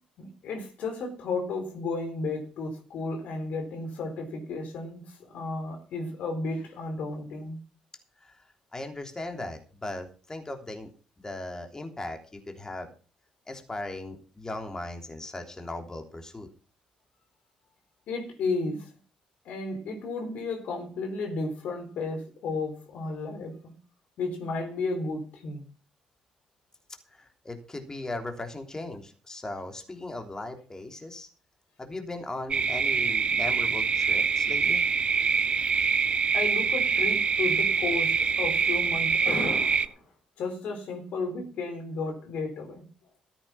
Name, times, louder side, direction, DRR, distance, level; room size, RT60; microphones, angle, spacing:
voice 1, 0.2-7.6 18.1-18.9 19.4-23.7 24.2-25.6 36.3-40.0 40.4-42.9, left 3 dB, 65° left, 4.0 m, -33 dB
voice 2, 8.2-10.9 11.2-12.9 13.5-16.5 27.1-31.3 31.8-34.8, left 2 dB, 25° left, 3.3 m, -38 dB
sound 1, 32.5-39.9, right 5 dB, 45° right, 1.0 m, -25 dB
14.0 x 8.6 x 5.9 m
hypercardioid pair, 50°, 3 cm